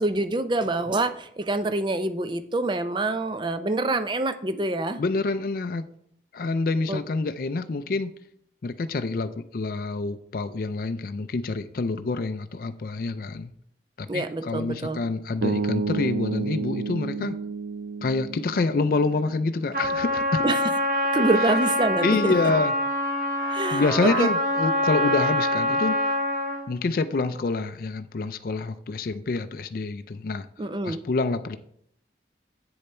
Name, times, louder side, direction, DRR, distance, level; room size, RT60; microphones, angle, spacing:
voice 1, 0.0-5.0 6.9-7.0 14.1-15.0 20.4-20.6 21.1-22.3 23.5-24.3 30.6-31.0, right 2 dB, 25° right, 11 dB, 0.5 m, -26 dB
voice 2, 5.0-5.9 6.3-8.1 8.6-13.5 14.0-17.4 18.0-20.4 22.0-22.7 23.7-26.0 26.7-30.5 30.8-31.6, left 3 dB, 50° left, 10 dB, 0.4 m, -27 dB
sound 1, 15.4-19.6, right 4 dB, 80° right, 0.5 m, -30 dB
Trumpet, 19.7-26.7, equal, 50° right, 1.9 m, -25 dB
7.9 x 6.8 x 4.3 m, 0.69 s
head